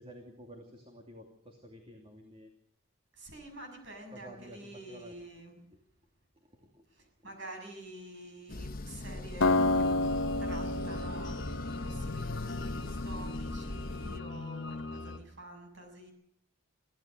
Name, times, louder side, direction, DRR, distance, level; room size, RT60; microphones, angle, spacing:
voice 1, 0.0-2.5 4.1-5.1 6.5-6.8, right 1 dB, 30° right, 3 dB, 2.7 m, -51 dB
voice 2, 3.1-5.6 6.9-9.9 10.4-16.1, right 1 dB, 60° right, 5 dB, 7.1 m, -48 dB
sound 1, 8.5-14.2, left 2 dB, 45° left, 0.9 m, -41 dB
Acoustic guitar, 9.4-12.6, left 2 dB, 75° left, 1.0 m, -30 dB
sound 2, 9.6-15.2, left 2 dB, 60° left, 1.3 m, -40 dB
24.0 x 16.5 x 6.7 m, 0.71 s
head